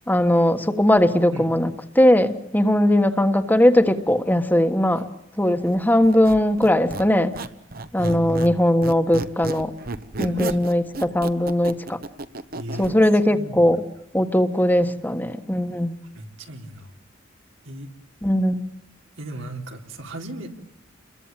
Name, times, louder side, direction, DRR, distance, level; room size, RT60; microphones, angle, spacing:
voice 1, 0.1-5.1 5.4-7.3 7.9-9.7 10.2-12.0 12.8-13.8 14.1-15.9 18.2-18.6, left 1 dB, 10° left, 7 dB, 1.5 m, -19 dB
Squeak, 6.0-8.6 8.8-12.9, right 2 dB, 50° right, 1.3 m, -33 dB
voice 2, 8.0-8.6 10.2-10.8 12.5-13.0 13.3-13.8 16.0-16.9 17.6-17.9 19.2-20.5, right 1 dB, 85° right, 2 dB, 3.9 m, -35 dB
29.5 x 22.5 x 9.0 m, 0.80 s
head